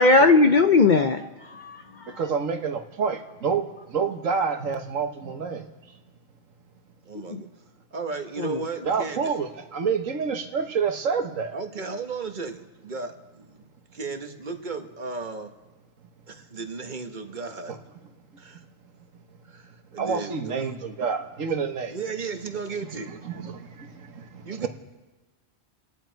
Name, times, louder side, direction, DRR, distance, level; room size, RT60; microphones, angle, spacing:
voice 1, 0.0-2.1 7.3-7.4 8.4-8.6, left 3 dB, 50° left, 7 dB, 0.7 m, -19 dB
voice 2, 2.2-5.7 8.8-11.5 20.0-22.0 23.2-24.7, right 6 dB, 85° right, 6 dB, 1.6 m, -28 dB
voice 3, 7.0-7.5 7.9-9.3 11.5-15.5 16.3-17.8 18.4-18.6 19.5-20.8 21.9-23.1 24.4-24.7, right 4 dB, 40° right, 6 dB, 1.3 m, -35 dB
29.5 x 10.0 x 4.6 m, 1.2 s
omnidirectional pair, 1.3 m